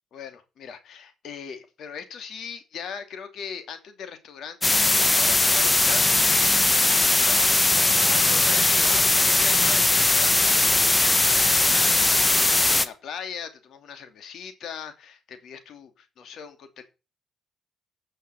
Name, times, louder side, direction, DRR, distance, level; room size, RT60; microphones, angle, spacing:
voice 1, 0.1-16.8, left 7 dB, 70° left, 8 dB, 2.7 m, -39 dB
sound 1, 4.6-12.9, left 2 dB, 20° left, 1.2 m, -20 dB
9.7 x 6.5 x 7.7 m, 0.30 s
cardioid pair, 90°, 0 cm